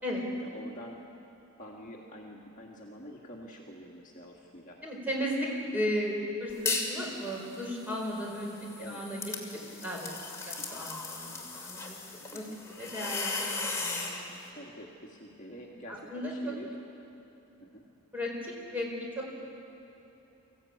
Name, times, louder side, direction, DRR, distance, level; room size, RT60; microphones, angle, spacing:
voice 1, 0.4-1.0 1.6-4.8 5.5-5.7 8.8-9.0 10.6-10.8 12.3-12.6 14.5-16.8 17.6-17.9, equal, 35° left, -2 dB, 1.8 m, -47 dB
voice 2, 4.8-9.2 9.8-10.1 10.5-12.5 12.8-14.3 16.1-16.3 18.1-18.9 19.2-19.4, equal, 10° right, -3 dB, 4.4 m, -35 dB
sound 1, 6.5-7.0 7.4-14.2, left 3 dB, 15° left, 2.3 m, -37 dB
24.5 x 15.5 x 8.7 m, 3.0 s
head